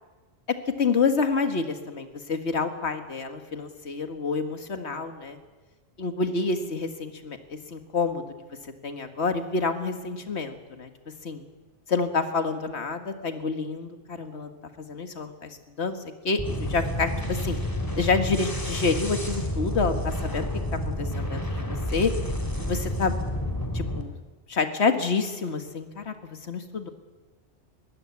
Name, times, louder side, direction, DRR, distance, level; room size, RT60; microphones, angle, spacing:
voice 1, 0.8-5.4 6.0-8.2 8.8-10.9 11.2-11.4 11.9-16.0 16.2-17.6 18.0-20.5 20.9-22.1 22.6-23.1 23.7-24.1 24.5-26.9, left 4 dB, 65° left, 7 dB, 2.0 m, -28 dB
sound 1, 16.4-24.0, left 1 dB, 15° left, 2.6 m, -30 dB
22.0 x 16.0 x 9.7 m, 1.2 s
omnidirectional pair, 1.2 m